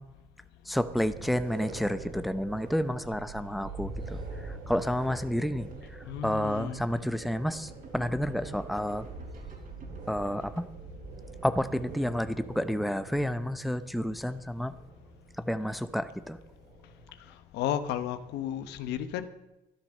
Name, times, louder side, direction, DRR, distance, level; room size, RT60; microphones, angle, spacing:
voice 1, 0.7-4.2 4.7-5.7 6.2-9.1 10.1-10.7 11.4-14.7 15.4-16.4, equal, ahead, 11 dB, 0.7 m, -30 dB
sound 1, 0.9-17.3, right 3 dB, 85° right, 4.8 m, -44 dB
sound 2, 5.6-10.6, right 3 dB, 60° right, 3.8 m, -49 dB
voice 2, 6.1-6.8 17.5-19.2, left 10 dB, 85° left, 11 dB, 1.1 m, -33 dB
13.0 x 12.0 x 6.5 m, 1.0 s
cardioid pair, 110°, 17 cm